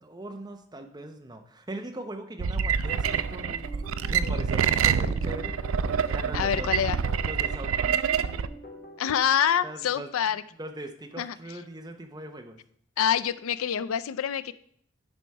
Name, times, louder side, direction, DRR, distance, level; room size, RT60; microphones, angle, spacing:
voice 1, 0.0-3.6 4.1-6.7 7.2-8.0 9.6-10.1 10.6-12.6, right 1 dB, 20° right, 5 dB, 0.8 m, -40 dB
sound 1, 2.4-8.5, right 7 dB, 80° right, 0.4 m, -26 dB
sound 2, 2.8-9.2, equal, 45° left, 1.3 m, -45 dB
voice 2, 6.3-7.0 9.0-10.4 11.2-11.3 13.0-14.5, left 9 dB, 90° left, 16 dB, 0.4 m, -26 dB
9.7 x 5.0 x 4.7 m, 0.63 s
head